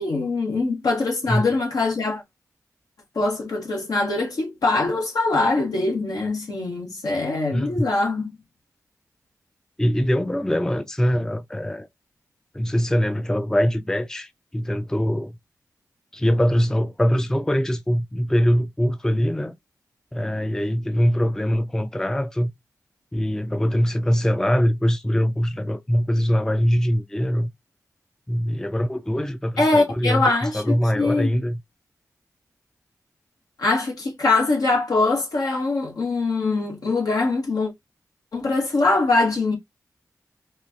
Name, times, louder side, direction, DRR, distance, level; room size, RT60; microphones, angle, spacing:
voice 1, 0.0-2.2 3.1-8.3 29.6-31.4 33.6-37.7 38.3-39.5, left 3 dB, 80° left, 1.4 m, -23 dB
voice 2, 7.5-7.9 9.8-11.9 12.5-15.4 16.1-19.5 20.1-22.5 23.1-27.5 28.3-31.6, equal, 10° left, 0.4 m, -22 dB
4.4 x 2.3 x 2.7 m
cardioid pair, 45°, 6 cm